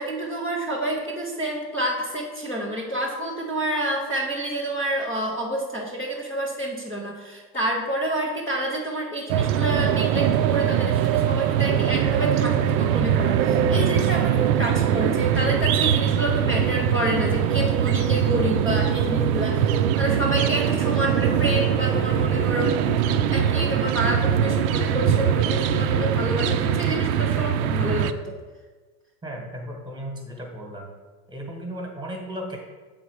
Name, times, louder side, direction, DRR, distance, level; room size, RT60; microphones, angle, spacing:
voice 1, 0.0-28.3, right 1 dB, 5° left, -6 dB, 0.3 m, -28 dB
sound 1, 9.3-28.1, right 9 dB, 60° right, 0.5 m, -22 dB
sound 2, 21.3-27.1, left 7 dB, 60° left, 0.9 m, -35 dB
voice 2, 29.2-30.9 31.3-32.6, equal, 10° right, 1 dB, 1.1 m, -35 dB
7.2 x 4.0 x 4.7 m, 1.3 s
supercardioid pair, 135°, 50 cm